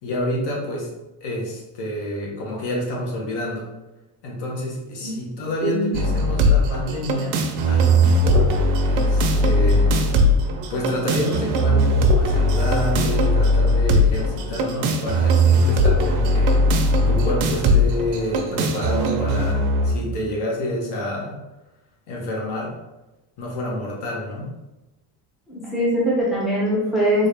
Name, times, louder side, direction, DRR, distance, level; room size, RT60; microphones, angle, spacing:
voice 1, 0.0-0.9 1.2-3.7 4.2-7.4 7.7-8.5 8.8-9.9 10.7-16.7 17.1-21.4 22.1-22.7 23.4-24.5, left 1 dB, 60° left, -2 dB, 1.2 m, -28 dB
voice 2, 5.6-5.9 25.5-27.3, equal, ahead, -6 dB, 0.5 m, -22 dB
sound 1, 5.9-19.9, equal, 85° right, 0.7 m, -19 dB
3.8 x 2.5 x 3.4 m, 1.0 s
cardioid pair, 165°, 45 cm